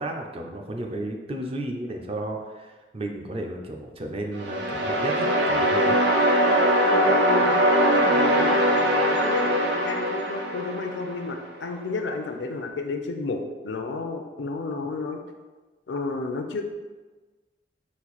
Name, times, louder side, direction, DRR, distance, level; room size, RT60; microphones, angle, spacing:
voice 1, 0.0-6.0, right 1 dB, 35° right, 3 dB, 0.5 m, -33 dB
sound 1, 4.3-11.4, equal, 75° right, 0.6 m, -21 dB
voice 2, 6.9-8.6 9.1-15.2 15.9-16.6, left 3 dB, 85° left, 5 dB, 0.5 m, -32 dB
4.2 x 2.5 x 4.1 m, 1.3 s
head